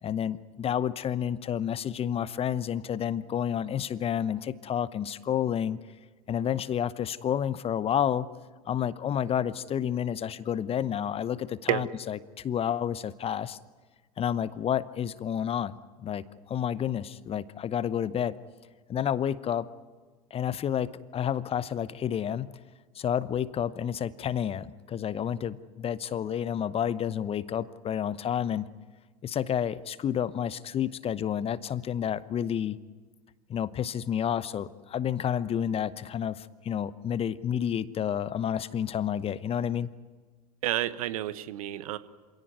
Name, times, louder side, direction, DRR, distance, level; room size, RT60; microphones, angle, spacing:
voice 1, 0.0-5.8 6.3-8.3 8.6-13.6 14.2-18.3 18.9-19.7 20.3-22.5 22.9-28.7 29.2-32.8 33.5-39.9, left 9 dB, 30° left, 17 dB, 0.9 m, -30 dB
voice 2, 40.6-42.0, right 14 dB, 65° right, 14 dB, 1.2 m, -29 dB
26.5 x 17.5 x 9.5 m, 1.4 s
figure-of-eight pair, 80°, 20 cm